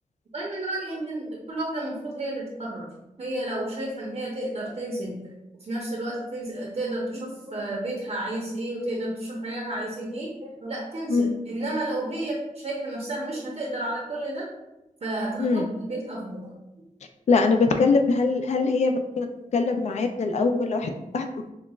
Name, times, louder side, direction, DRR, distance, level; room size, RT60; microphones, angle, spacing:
voice 1, 0.3-2.9 3.2-5.3 5.6-14.5 15.0-16.6, right 1 dB, 50° right, -3 dB, 0.8 m, -31 dB
voice 2, 15.4-15.7 17.3-19.3 19.5-21.3, left 4 dB, 55° left, 6 dB, 0.4 m, -22 dB
5.6 x 2.3 x 2.3 m, 0.91 s
wide cardioid pair, 80°, 14 cm